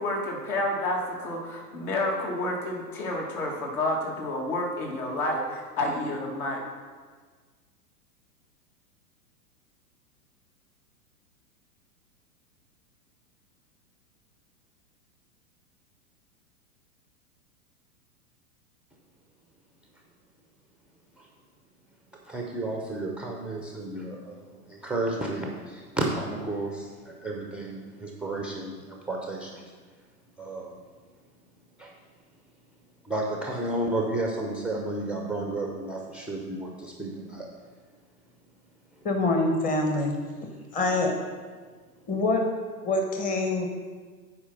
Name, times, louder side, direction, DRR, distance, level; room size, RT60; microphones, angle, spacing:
voice 1, 0.0-6.6, left 1 dB, 65° left, -1 dB, 2.4 m, -29 dB
voice 2, 22.3-29.7 30.4-30.8 31.8-31.9 33.0-37.5, right 2 dB, ahead, 0 dB, 0.5 m, -32 dB
voice 3, 39.0-40.2 40.7-41.1 42.1-42.5 42.8-43.7, left 2 dB, 15° left, 3 dB, 1.0 m, -25 dB
8.7 x 4.7 x 5.6 m, 1.5 s
figure-of-eight pair, 105°, 48 cm